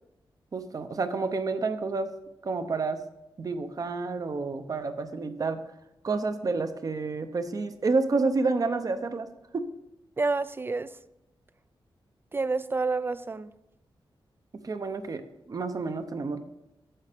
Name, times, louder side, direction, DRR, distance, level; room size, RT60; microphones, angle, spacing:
voice 1, 0.5-2.1 2.4-3.0 3.4-5.6 6.0-9.3 9.5-9.7 14.6-16.4, right 3 dB, 40° right, 0.7 m, -29 dB
voice 2, 10.2-11.0 12.3-13.5, right 3 dB, 25° right, 0.3 m, -29 dB
8.9 x 7.3 x 5.1 m
wide cardioid pair, 155°, 9 cm